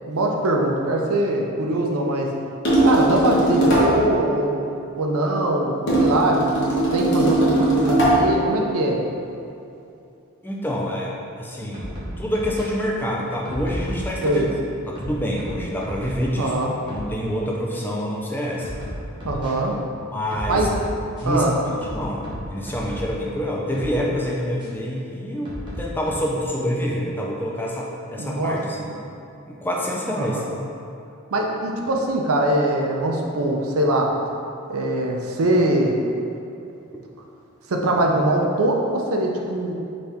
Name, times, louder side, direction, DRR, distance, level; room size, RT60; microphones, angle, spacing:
voice 1, 0.1-2.3 2.8-4.6 5.0-6.5 6.9-9.0 14.2-14.5 16.4-16.7 19.2-19.8 20.5-20.7 21.2-21.5 28.2-28.5 28.9-29.0 30.2-30.5 31.3-34.1 34.7-36.0 37.7-39.7, right 1 dB, 80° right, 0 dB, 0.6 m, -22 dB
sound 1, 2.7-4.0 5.9-8.3, right 1 dB, 55° left, 1.0 m, -19 dB
voice 2, 10.4-14.5 14.9-16.5 16.9-18.7 20.1-20.7 21.2-21.6 21.9-28.6 29.5-30.4, equal, 10° left, -3 dB, 0.3 m, -27 dB
sound 2, 11.7-12.7 13.4-14.5 14.9-16.3 16.7-17.1 17.7-17.8 18.6-19.5 20.3-21.4 21.8-23.2 23.7-24.0 24.6-24.7 25.4-26.1, equal, 20° right, 0.9 m, -33 dB
4.2 x 3.4 x 3.5 m, 2.7 s
head